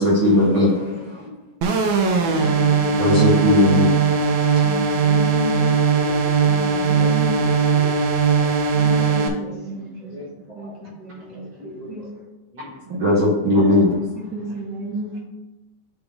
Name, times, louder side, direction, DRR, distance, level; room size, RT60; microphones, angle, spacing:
voice 1, 0.0-0.9 2.6-2.7 3.0-4.3 12.9-14.0, left 1 dB, 65° right, -4 dB, 1.3 m, -18 dB
voice 2, 0.9-1.3 2.2-2.8 5.2-6.5 6.9-7.9 8.3-10.7 11.3-12.1 12.5-13.0, left 2 dB, 75° left, -7 dB, 0.3 m, -39 dB
sound 1, 1.6-9.3, right 5 dB, 80° right, 1.9 m, -19 dB
voice 3, 2.1-3.1 4.6-6.2 6.4-7.6 8.7-10.1 10.5-11.4 11.6-12.1 13.6-13.7 14.1-15.2, equal, 45° right, -4 dB, 1.6 m, -32 dB
10.0 x 3.5 x 3.5 m, 1.0 s
omnidirectional pair, 3.4 m